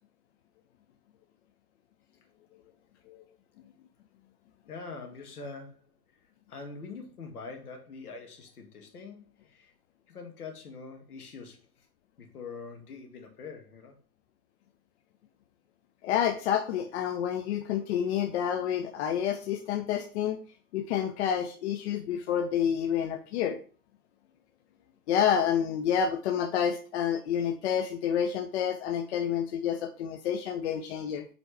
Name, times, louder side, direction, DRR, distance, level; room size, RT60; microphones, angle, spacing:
voice 1, 4.7-6.0 6.5-9.7 10.1-11.9 12.2-14.0, left 4 dB, 65° left, 2 dB, 2.0 m, -44 dB
voice 2, 16.0-20.4 20.7-23.6 25.1-31.2, left 8 dB, 45° left, 6 dB, 0.7 m, -29 dB
7.7 x 4.1 x 3.4 m, 0.39 s
figure-of-eight pair, 95°, 47 cm